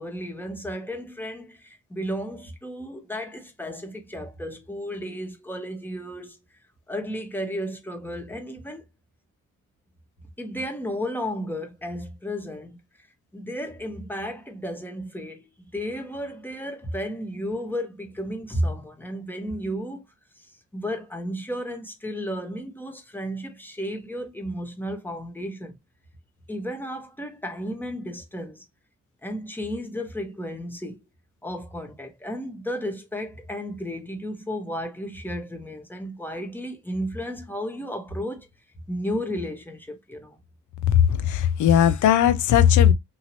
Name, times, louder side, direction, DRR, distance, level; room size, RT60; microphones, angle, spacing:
voice 1, 0.0-6.4 6.9-8.8 10.4-12.8 13.3-20.0 20.4-20.5 20.7-25.8 26.5-28.6 29.2-31.0 31.4-38.5 38.9-40.4, equal, 5° left, 1.0 m, -33 dB
voice 2, 40.9-42.9, left 9 dB, 75° left, 0.6 m, -18 dB
2.8 x 2.7 x 2.9 m
cardioid pair, 90°, 30 cm